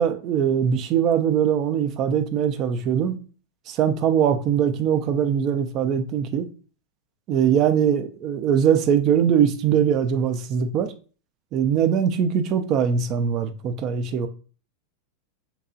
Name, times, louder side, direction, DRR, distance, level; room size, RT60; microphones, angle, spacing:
voice 1, 0.0-3.2 3.7-6.5 7.3-10.9 11.5-14.3, right 8 dB, 35° right, 0.3 m, -21 dB
2.8 x 2.2 x 2.5 m
figure-of-eight pair, 90°, 0 cm